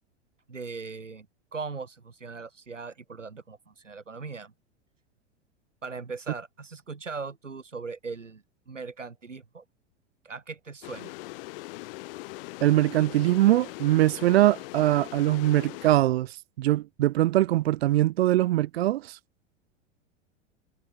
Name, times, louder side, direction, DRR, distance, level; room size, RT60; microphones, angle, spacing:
voice 1, 0.5-4.5 5.8-9.6 10.2-11.1, right 4 dB, 80° right, 3.1 m, -39 dB
sound 1, 10.8-16.0, left 22 dB, 50° left, 2.5 m, -41 dB
voice 2, 12.6-19.2, right 15 dB, 55° right, 0.8 m, -22 dB
figure-of-eight pair, 90°, 36 cm